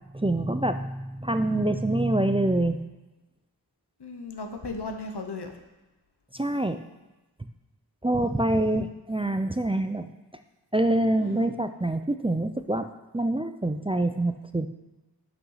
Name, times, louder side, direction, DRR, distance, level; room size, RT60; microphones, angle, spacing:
voice 1, 0.1-2.8 6.3-6.8 8.0-10.1 10.7-12.9 13.1-14.7, right 1 dB, 15° right, 8 dB, 0.4 m, -25 dB
voice 2, 4.0-5.6 8.1-8.8 11.1-11.5, left 3 dB, 80° left, 5 dB, 1.0 m, -38 dB
6.2 x 5.6 x 5.6 m, 1.0 s
wide cardioid pair, 45°, 40 cm